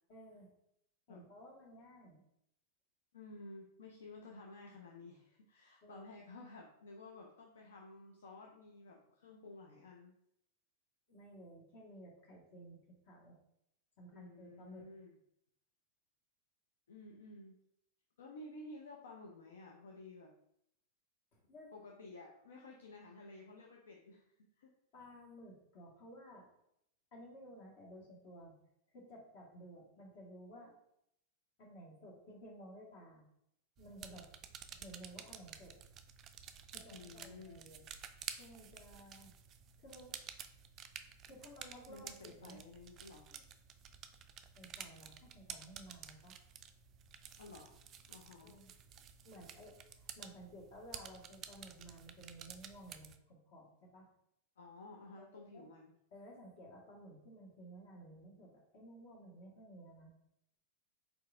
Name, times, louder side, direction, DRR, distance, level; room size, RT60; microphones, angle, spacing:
voice 1, 0.1-0.5 1.1-2.2 5.8-6.1 11.1-13.4 14.0-14.8 21.3-21.7 24.9-26.5 27.1-28.5 28.9-30.7 31.6-33.2 33.8-34.3 34.7-35.8 36.7-37.8 38.3-39.3 39.8-40.2 41.3-42.6 43.3-43.4 44.5-46.4 48.4-48.7 49.2-54.1 55.2-55.7 56.1-60.1, right 1 dB, 45° left, -2 dB, 1.5 m, -55 dB
voice 2, 3.1-10.1 14.1-15.1 16.9-17.6 18.2-20.3 21.7-24.7 36.9-37.7 41.9-43.3 47.4-47.8 48.1-48.6 54.6-55.9, left 2 dB, 65° left, 0 dB, 0.5 m, -53 dB
sound 1, 33.8-53.2, right 8 dB, 30° right, 0.3 m, -52 dB
4.5 x 3.8 x 2.5 m, 0.75 s
figure-of-eight pair, 90°, 0 cm